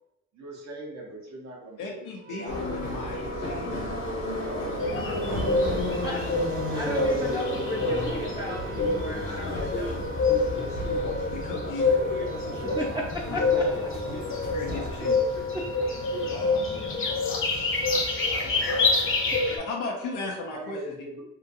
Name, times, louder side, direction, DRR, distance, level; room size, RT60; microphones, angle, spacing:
voice 1, 0.3-3.7 4.3-6.8 9.9-10.4 11.9-13.0 13.3-14.3 14.6-15.0 15.9-17.7 18.2-19.2 20.4-21.2, right 2 dB, 65° right, -2 dB, 1.0 m, -43 dB
Wind instrument woodwind instrument, 1.7-20.5, right 3 dB, 85° right, 0.5 m, -43 dB
voice 2, 1.8-3.9 11.3-12.0 13.3-13.4 14.5-15.2 19.5-20.8, left 3 dB, 85° left, -1 dB, 0.6 m, -36 dB
Subway metro underground, 2.5-15.0, left 1 dB, 70° left, 1.1 m, -33 dB
sound 1, 4.8-19.6, left 3 dB, 45° left, 0.7 m, -27 dB
voice 3, 6.7-10.1 12.6-12.9 13.3-13.6, equal, 15° right, -4 dB, 0.6 m, -34 dB
2.8 x 2.5 x 2.7 m, 0.85 s
cardioid pair, 90°, 30 cm